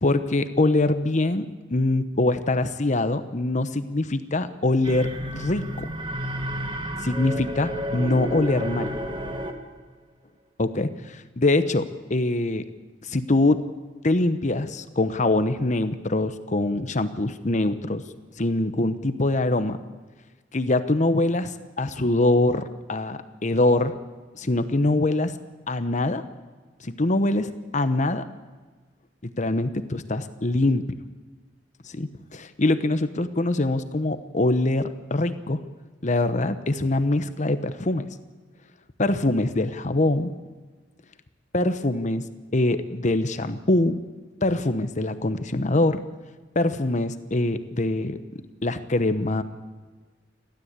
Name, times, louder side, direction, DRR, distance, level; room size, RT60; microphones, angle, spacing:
voice 1, 0.0-1.5 1.7-5.9 7.0-8.9 10.6-12.7 13.0-13.6 14.0-18.0 18.4-19.8 20.5-24.0 24.3-25.3 25.7-26.2 26.8-28.3 29.4-30.9 31.8-35.6 36.0-38.1 39.0-40.3 41.5-42.2 42.5-44.0 44.4-46.0 46.5-48.2 48.6-49.4, left 2 dB, 40° left, 11 dB, 1.0 m, -23 dB
sound 1, 4.8-9.8, equal, 25° right, 1.8 m, -31 dB
29.5 x 13.0 x 8.2 m, 1.3 s
head